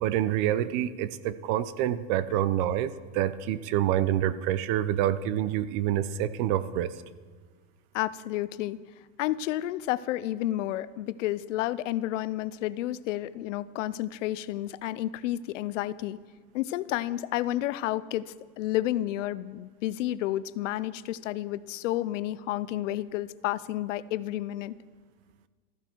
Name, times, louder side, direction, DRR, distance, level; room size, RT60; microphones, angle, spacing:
voice 1, 0.0-6.9, right 11 dB, 45° right, 15 dB, 0.6 m, -27 dB
voice 2, 7.9-8.8 9.2-16.2 16.5-24.8, left 14 dB, 85° left, 17 dB, 0.7 m, -31 dB
15.5 x 14.5 x 4.5 m, 1.5 s
supercardioid pair, 160°, 36 cm